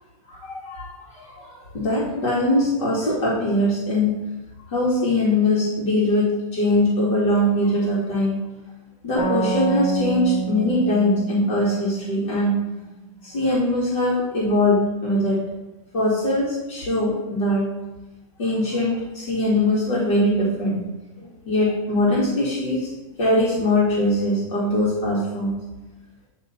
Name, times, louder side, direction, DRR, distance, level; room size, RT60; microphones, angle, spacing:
voice 1, 0.3-4.2 4.7-8.4 9.0-12.6 13.2-15.4 15.9-17.7 18.4-20.9 21.2-22.9 23.2-25.6, left 1 dB, 50° left, -6 dB, 1.8 m, -22 dB
sound 1, 9.2-12.7, right 5 dB, 75° left, 1.3 m, -28 dB
8.2 x 3.0 x 4.2 m, 1.0 s
supercardioid pair, 175°, 18 cm